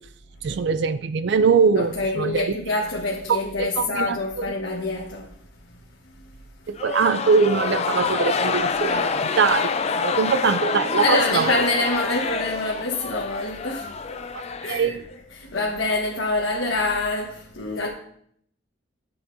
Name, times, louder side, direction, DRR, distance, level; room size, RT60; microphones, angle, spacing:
voice 1, 0.4-2.5 3.3-4.5 6.7-11.6 14.7-15.0, right 5 dB, 60° right, 0.4 m, -22 dB
voice 2, 1.7-6.8 11.0-14.2 14.6-15.0 15.3-17.9, left 2 dB, 75° left, 1.3 m, -27 dB
sound 1, 6.7-15.2, left 5 dB, 35° left, 0.4 m, -27 dB
13.0 x 7.8 x 2.6 m
head